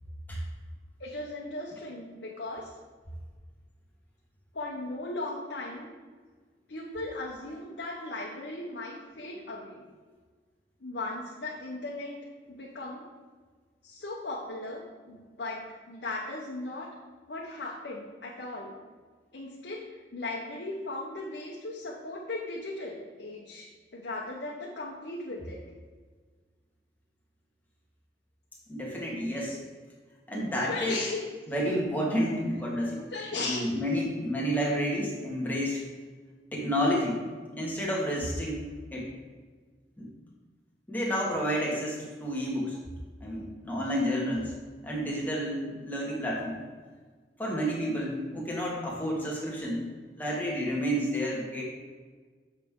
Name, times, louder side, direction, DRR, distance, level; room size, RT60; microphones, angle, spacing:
voice 1, 1.0-2.7 4.5-5.9 6.7-9.8 10.8-12.2 12.5-13.0 13.8-16.9 17.3-18.8 19.3-19.8 20.1-25.6 30.7-31.2 33.1-33.7, left 2 dB, 70° left, -3 dB, 1.0 m, -37 dB
voice 2, 28.7-29.6 30.3-31.0 31.5-33.0 33.3-35.8 36.5-37.2 37.5-38.6 38.9-39.1 40.0-40.1 40.9-42.8 43.2-44.5 44.8-46.6 47.4-49.9 50.2-51.6, equal, 10° left, -4 dB, 1.6 m, -30 dB
7.4 x 6.4 x 3.7 m, 1.5 s
head